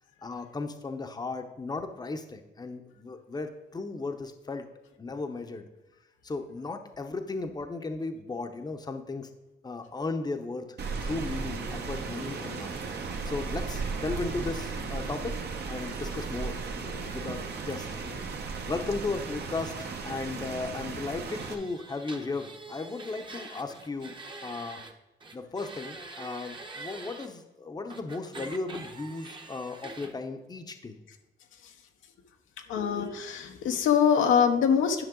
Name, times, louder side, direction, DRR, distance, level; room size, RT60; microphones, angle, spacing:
voice 1, 0.2-4.6 5.0-5.7 6.2-9.3 9.6-10.7 11.0-12.7 13.2-15.4 15.7-16.6 17.1-17.9 18.6-24.8 25.3-31.0, left 3 dB, 20° left, 6 dB, 0.8 m, -35 dB
Rain, 10.8-21.5, right 4 dB, 55° right, 1.1 m, -35 dB
sound 1, 21.3-24.9 25.2-27.3 27.9-30.1, right 3 dB, 25° right, 1.0 m, -44 dB
voice 2, 32.7-35.0, left 7 dB, 85° left, 4 dB, 1.0 m, -24 dB
11.0 x 5.8 x 3.8 m, 1.0 s
cardioid pair, 90°, 20 cm